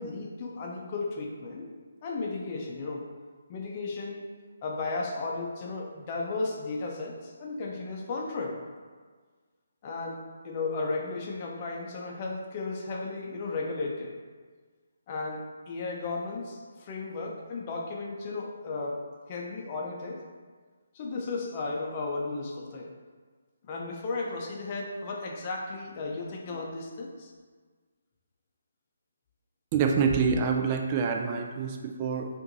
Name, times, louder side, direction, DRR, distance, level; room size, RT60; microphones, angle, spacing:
voice 1, 0.0-1.7 2.0-3.1 3.5-4.3 4.6-8.6 9.8-14.1 15.1-19.0 19.3-20.2 20.9-22.9 23.7-27.3, left 3 dB, 30° left, -1 dB, 0.7 m, -34 dB
voice 2, 29.7-32.3, right 5 dB, 25° right, 2 dB, 0.4 m, -26 dB
7.6 x 2.6 x 2.6 m, 1.5 s
figure-of-eight pair, 145°, 0 cm